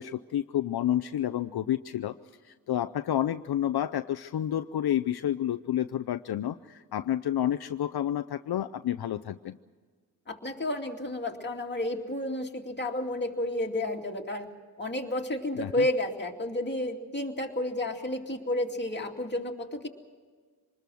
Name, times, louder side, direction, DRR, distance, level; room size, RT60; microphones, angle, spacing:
voice 1, 0.0-2.1 2.4-9.6 15.5-15.8, left 11 dB, 70° left, 10 dB, 0.6 m, -30 dB
voice 2, 10.3-14.5 14.8-19.9, left 1 dB, 25° left, 1 dB, 2.6 m, -31 dB
25.5 x 20.5 x 6.3 m, 1.5 s
cardioid pair, 85°, 40 cm